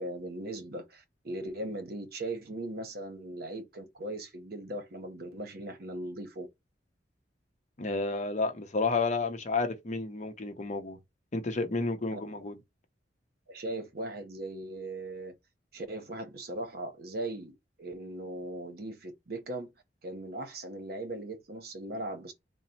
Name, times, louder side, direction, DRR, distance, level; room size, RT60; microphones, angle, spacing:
voice 1, 0.0-6.5 12.1-12.2 13.5-15.4 15.7-19.7 20.0-22.3, right 1 dB, 55° right, 0.9 m, -39 dB
voice 2, 7.8-11.0 11.3-12.6, left 3 dB, 40° left, 0.7 m, -31 dB
4.0 x 2.0 x 4.1 m
head